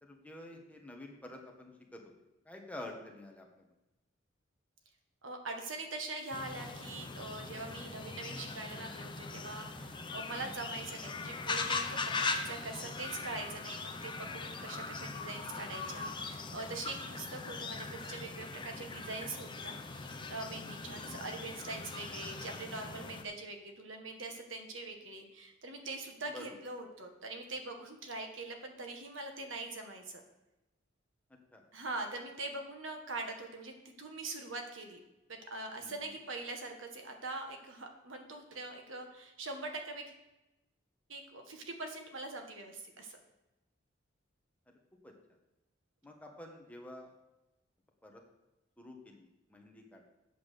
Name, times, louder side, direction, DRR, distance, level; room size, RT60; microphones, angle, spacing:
voice 1, 0.0-2.1 2.4-3.6 10.3-10.5 14.7-14.9 20.8-21.2 26.3-26.4 31.5-31.6 35.8-36.1 45.0-45.1 46.0-47.1 48.0-48.2 48.8-50.0, left 1 dB, 10° left, 1 dB, 1.3 m, -49 dB
voice 2, 5.2-30.2 31.7-35.0 35.3-40.0 41.1-43.2, right 2 dB, 85° right, 4 dB, 1.6 m, -43 dB
sound 1, 6.3-23.2, left 4 dB, 25° left, 0.7 m, -40 dB
8.2 x 7.1 x 6.7 m, 0.98 s
head